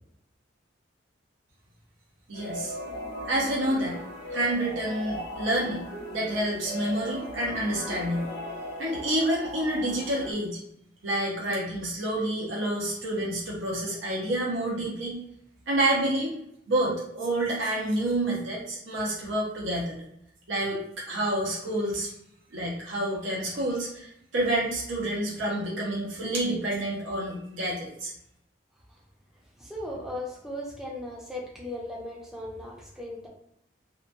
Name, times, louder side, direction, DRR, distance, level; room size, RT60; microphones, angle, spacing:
sound 1, 2.3-10.3, left 1 dB, 60° left, 0.9 m, -38 dB
voice 1, 2.3-2.7 3.3-4.0 4.3-5.8 6.1-8.3 8.8-10.6 11.0-15.1 15.7-16.3 16.7-20.0 20.5-20.8 21.1-22.1 22.5-28.1, right 1 dB, 85° right, -4 dB, 0.7 m, -28 dB
voice 2, 29.6-33.3, left 1 dB, ahead, -4 dB, 0.5 m, -37 dB
2.7 x 2.2 x 2.5 m, 0.76 s
head